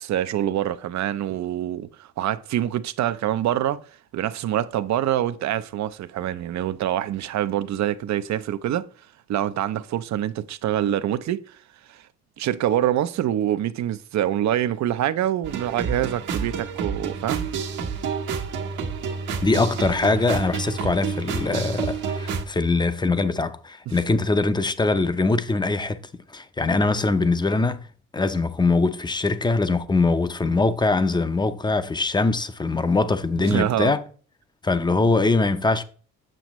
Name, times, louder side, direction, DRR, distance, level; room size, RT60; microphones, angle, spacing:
voice 1, 0.0-3.8 4.1-8.9 9.3-11.6 11.9-12.0 12.4-17.5 23.9-24.0 33.4-34.0, right 12 dB, 65° right, 0.6 m, -25 dB
sound 1, 15.4-22.4, right 5 dB, 80° right, 1.3 m, -29 dB
voice 2, 19.4-26.0 26.3-27.9 28.1-34.0 34.6-35.8, left 3 dB, 15° left, 0.6 m, -22 dB
7.7 x 6.3 x 3.0 m
cardioid pair, 90°, 30 cm